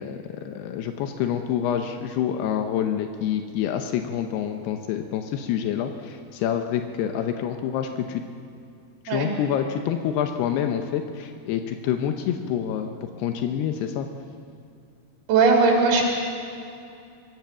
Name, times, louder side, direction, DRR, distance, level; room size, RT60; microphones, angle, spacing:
voice 1, 0.0-8.2 9.0-14.1, left 9 dB, 85° left, 6 dB, 3.0 m, -27 dB
voice 2, 15.3-16.0, right 4 dB, 75° right, -1 dB, 5.0 m, -18 dB
24.0 x 16.0 x 7.3 m, 2.6 s
omnidirectional pair, 4.6 m